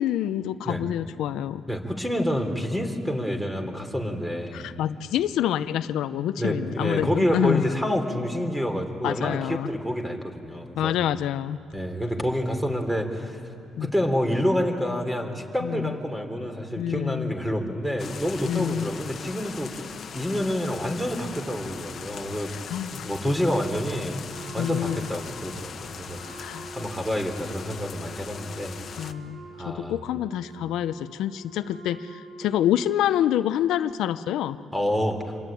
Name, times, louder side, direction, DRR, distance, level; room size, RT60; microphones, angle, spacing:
voice 1, 0.0-1.6 4.5-7.7 9.0-9.7 10.8-11.6 13.8-13.9 15.6-15.9 16.8-17.3 18.4-18.9 22.7-23.1 24.5-25.1 26.4-26.7 29.0-29.4 29.7-34.6, left 11 dB, 85° left, 12 dB, 0.6 m, -27 dB
voice 2, 1.7-4.7 6.4-11.0 11.7-13.4 13.8-22.5 23.0-24.2 24.5-26.2 26.7-28.8 29.6-30.0 34.7-35.3, equal, 5° right, 5 dB, 3.4 m, -28 dB
sound 1, 18.0-29.1, left 7 dB, 50° left, 1.2 m, -40 dB
Wind instrument woodwind instrument, 24.3-33.1, right 2 dB, 70° right, 2.3 m, -46 dB
27.0 x 21.5 x 9.2 m, 2.8 s
cardioid pair, 90°, 0 cm